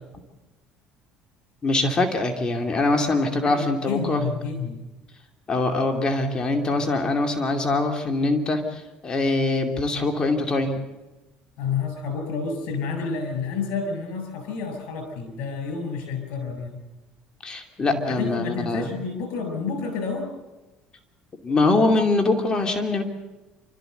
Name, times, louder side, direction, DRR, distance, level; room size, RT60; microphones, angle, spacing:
voice 1, 1.6-4.2 5.5-10.8 17.4-18.9 21.4-23.0, left 2 dB, 30° left, 4 dB, 2.6 m, -23 dB
voice 2, 3.4-4.8 6.8-6.9 11.6-16.8 17.9-20.3, left 5 dB, 75° left, 6 dB, 6.9 m, -30 dB
28.0 x 13.5 x 8.0 m, 1.1 s
supercardioid pair, 95°, 3 cm